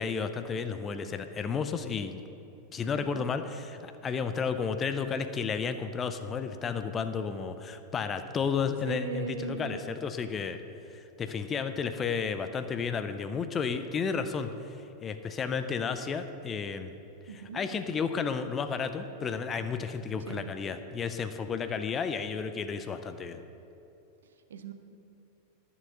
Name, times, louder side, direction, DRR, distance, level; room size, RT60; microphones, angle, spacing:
voice 1, 0.0-2.2 2.7-10.6 10.9-14.5 15.0-16.9 17.5-23.4, left 5 dB, 25° left, 9 dB, 0.6 m, -32 dB
voice 2, 2.9-3.3 8.8-9.8 17.3-17.6 20.3-20.5 24.2-24.7, right 5 dB, 65° right, 8 dB, 0.7 m, -39 dB
11.0 x 7.0 x 6.7 m, 2.8 s
figure-of-eight pair, 90°, 0 cm